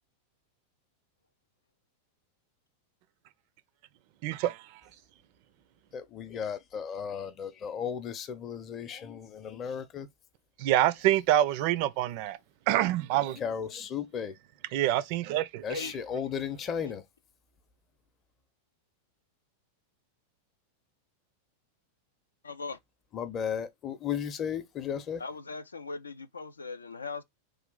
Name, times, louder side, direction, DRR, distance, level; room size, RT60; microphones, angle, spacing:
voice 1, 4.2-4.6 10.6-12.4 12.7-13.4 14.7-15.9, right 13 dB, 45° right, 0.4 m, -26 dB
voice 2, 5.9-10.1 13.4-14.3 15.6-17.0 23.1-25.2, left 7 dB, 30° left, 0.6 m, -35 dB
voice 3, 22.4-22.8 25.2-27.2, left 4 dB, 75° left, 0.4 m, -39 dB
3.2 x 2.3 x 3.8 m
figure-of-eight pair, 90°, 0 cm